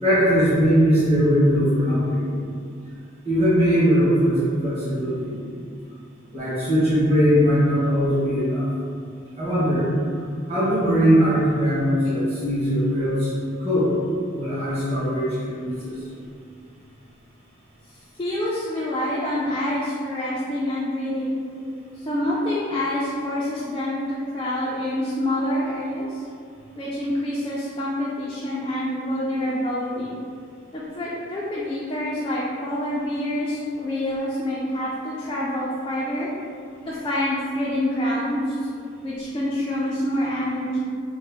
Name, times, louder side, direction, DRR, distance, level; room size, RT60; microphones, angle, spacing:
voice 1, 0.0-2.2 3.2-5.4 6.3-8.6 9.4-9.8 10.5-13.3 13.6-13.9 14.3-15.9, equal, 30° right, -12 dB, 1.1 m, -20 dB
voice 2, 18.2-21.4 22.0-26.2 26.8-30.2 30.7-36.3 36.9-38.6 39.0-40.8, left 1 dB, 25° left, -7 dB, 0.3 m, -26 dB
3.7 x 2.1 x 3.4 m, 2.3 s
head